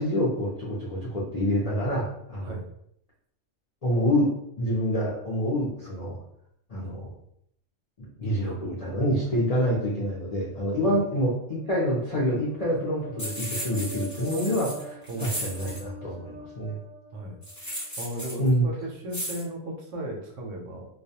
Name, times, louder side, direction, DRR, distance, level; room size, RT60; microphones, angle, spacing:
voice 1, 0.0-2.6 3.8-4.3 4.6-6.2 6.7-7.1 8.0-16.8 18.4-18.7, equal, 55° left, -7 dB, 0.4 m, -27 dB
sound 1, 11.3-17.9, right 2 dB, 45° right, 0.7 m, -45 dB
sound 2, 13.2-15.8 17.4-18.5 19.1-19.4, equal, 15° left, 0.7 m, -35 dB
voice 2, 15.1-15.5 17.1-17.4 18.0-20.9, right 1 dB, 70° right, 1 dB, 0.9 m, -36 dB
2.3 x 2.1 x 2.7 m, 0.72 s
omnidirectional pair, 1.4 m